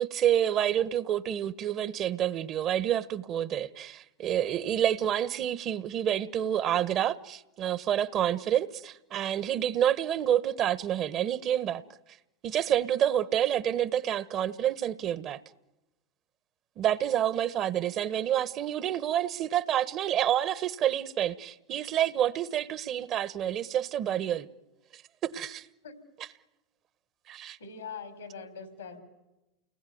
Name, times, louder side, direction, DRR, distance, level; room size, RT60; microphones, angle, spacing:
voice 1, 0.0-11.8 12.4-15.4 16.8-24.5 24.9-25.7 26.2-26.3 27.3-27.6, right 10 dB, 45° right, 1.2 m, -28 dB
voice 2, 27.6-29.0, left 5 dB, 85° left, 4.5 m, -42 dB
29.5 x 20.0 x 9.5 m
hypercardioid pair, 90°, 0 cm